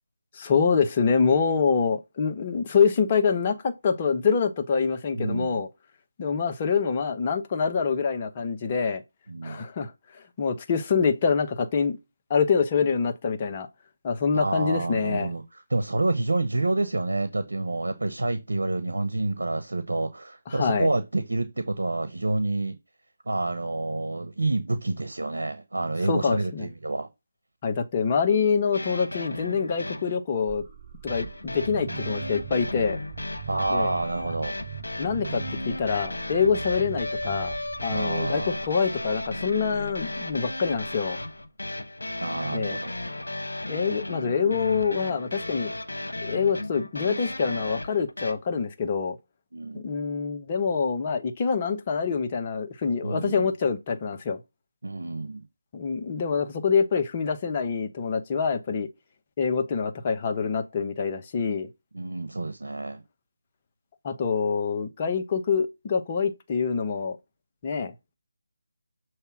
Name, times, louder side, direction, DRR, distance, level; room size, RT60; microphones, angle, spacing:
voice 1, 0.3-5.7 6.2-9.0 9.4-12.0 12.3-13.7 14.0-15.3 20.5-20.9 26.0-26.7 27.6-30.6 31.0-33.0 33.7-33.9 34.2-34.3 35.0-37.6 37.8-41.2 42.5-42.8 43.7-45.7 46.2-49.2 49.7-54.4 55.7-58.9 59.4-61.7 64.0-67.2 67.6-67.9, left 5 dB, 30° left, 0.9 m, -25 dB
voice 2, 5.2-5.6 9.3-9.6 14.3-15.4 15.7-22.8 23.3-27.1 33.5-34.5 37.9-38.6 42.2-42.9 49.5-49.8 53.0-53.5 54.8-55.4 61.9-63.0, right 2 dB, 75° right, 1.0 m, -28 dB
sound 1, 28.7-30.2 31.1-48.3, left 1 dB, 85° left, 1.1 m, -35 dB
sound 2, 30.5-41.3, right 6 dB, 20° right, 4.9 m, -41 dB
6.8 x 3.2 x 6.1 m
figure-of-eight pair, 160°, 0 cm